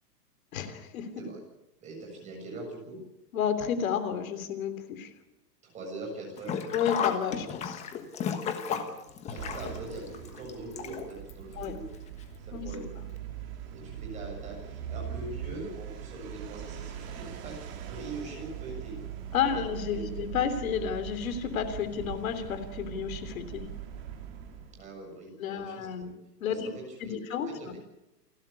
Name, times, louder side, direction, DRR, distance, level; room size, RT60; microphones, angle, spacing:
voice 1, 0.5-1.2 3.3-5.1 6.7-7.8 11.5-11.7 12.5-12.7 19.3-23.7 25.4-26.1 26.4-26.7 27.0-27.7, left 8 dB, 55° left, 10 dB, 3.3 m, -31 dB
voice 2, 1.8-3.0 5.6-6.6 8.7-8.9 9.3-11.8 12.4-12.9 13.7-18.9 19.3-19.6 19.9-20.2 24.7-26.1 26.5-27.8, right 2 dB, 15° right, 0 dB, 7.3 m, -42 dB
Sink (filling or washing), 6.4-11.3 11.6-11.7 12.7-12.8 13.2-13.3, left 7 dB, 15° left, 1.3 m, -34 dB
sound 1, 9.4-24.9, right 9 dB, 35° right, 3.3 m, -41 dB
29.5 x 12.5 x 8.4 m, 0.94 s
hypercardioid pair, 160°, 49 cm